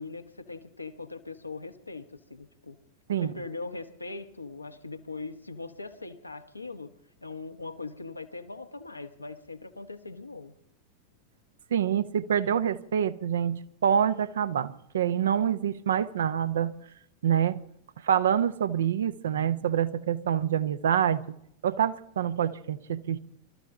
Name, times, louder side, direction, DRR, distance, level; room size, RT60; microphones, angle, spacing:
voice 1, 0.0-2.8 3.2-6.9 7.2-10.5, left 3 dB, 85° left, 1.2 m, -40 dB
voice 2, 11.7-16.7 17.2-17.6 18.0-21.2 21.6-23.2, right 9 dB, 65° right, 0.8 m, -26 dB
25.5 x 13.5 x 3.7 m
figure-of-eight pair, 90°, 0 cm